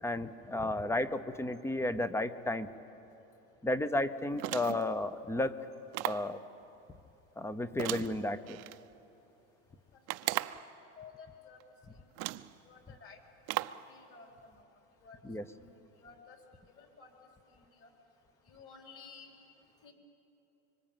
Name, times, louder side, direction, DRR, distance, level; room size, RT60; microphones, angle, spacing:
voice 1, 0.0-2.7 3.6-5.6 6.0-6.4 7.4-8.6 15.2-15.4, left 1 dB, 5° left, 13 dB, 0.7 m, -33 dB
sound 1, 4.4-4.9 5.9-6.3 7.8-8.8 10.1-10.7 11.6-11.7 12.2-12.5 13.5-13.9, right 17 dB, 40° right, 0.7 m, -36 dB
voice 2, 11.0-11.6 12.6-13.2 13.9-14.5 15.0-15.2 15.6-16.4 16.8-17.1 17.8-17.9 18.5-19.3 19.8-19.9, left 5 dB, 35° left, 2 dB, 4.2 m, -53 dB
25.0 x 24.0 x 9.1 m, 3.0 s
supercardioid pair, 140°, 37 cm